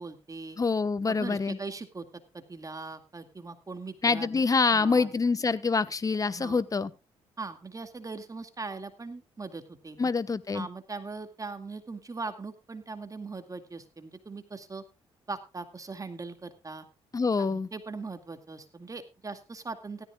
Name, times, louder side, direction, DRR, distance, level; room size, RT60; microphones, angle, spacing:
voice 1, 0.0-0.6 1.1-2.1 2.3-5.1 6.3-6.6 7.4-10.1 10.5-14.8 15.3-16.9 17.4-20.0, right 3 dB, 30° right, 8 dB, 2.2 m, -40 dB
voice 2, 0.6-1.6 4.0-6.9 10.0-10.7 17.1-17.7, left 4 dB, 30° left, 15 dB, 1.1 m, -26 dB
17.0 x 14.0 x 2.4 m, 0.27 s
cardioid pair, 70°, 12 cm